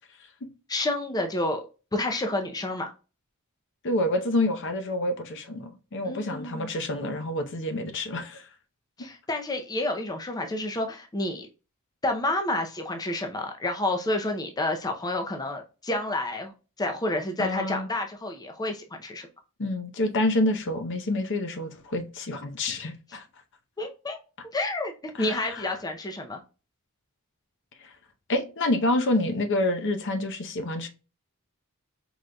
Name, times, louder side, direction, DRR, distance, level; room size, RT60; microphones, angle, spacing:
voice 1, 0.7-1.6 1.9-2.9 6.0-6.7 9.0-11.5 12.0-16.5 16.8-19.3 23.8-24.2 24.5-26.4, left 2 dB, 15° left, 0.5 m, -29 dB
voice 2, 3.8-8.4 17.4-17.9 19.6-23.2 25.2-25.7 27.8-27.9 28.3-30.9, left 1 dB, 55° left, 0.7 m, -28 dB
4.9 x 3.8 x 2.2 m
head